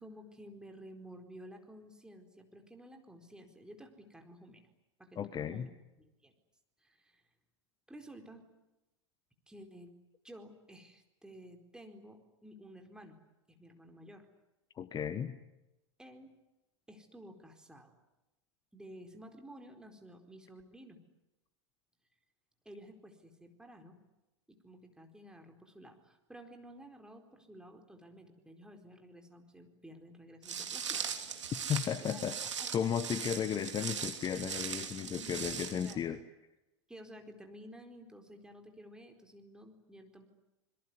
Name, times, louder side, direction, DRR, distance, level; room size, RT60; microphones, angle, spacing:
voice 1, 0.0-4.6 5.0-5.7 6.0-6.3 6.8-7.2 7.9-8.5 9.5-9.9 10.2-13.2 13.5-14.3 16.0-16.3 16.9-17.9 18.7-21.0 22.6-24.0 24.5-31.0 32.0-32.2 32.6-32.7 33.1-33.3 35.2-35.5 35.8-36.1 36.9-40.3, equal, 5° right, 4 dB, 4.4 m, -53 dB
voice 2, 5.2-5.7 14.8-15.4 31.5-36.2, left 8 dB, 25° left, 13 dB, 1.2 m, -35 dB
Walk footsteps, 30.4-35.9, right 7 dB, 80° right, 3.3 m, -39 dB
26.5 x 22.0 x 9.8 m, 0.98 s
figure-of-eight pair, 90°, 15 cm